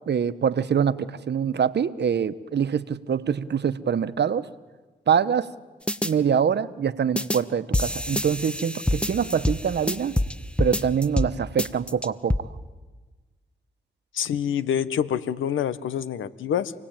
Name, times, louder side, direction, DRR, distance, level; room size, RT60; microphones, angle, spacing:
voice 1, 0.1-4.5 5.1-5.5 6.0-10.2 10.6-12.5, right 7 dB, 60° right, 13 dB, 1.2 m, -24 dB
sound 1, 5.9-6.1 7.2-7.4 7.7-10.3 10.6-11.3 11.6-12.4, left 1 dB, 5° left, 1.3 m, -25 dB
voice 2, 14.1-16.7, left 9 dB, 80° left, 14 dB, 1.2 m, -26 dB
27.5 x 19.0 x 9.0 m, 1.3 s
supercardioid pair, 50°, 20 cm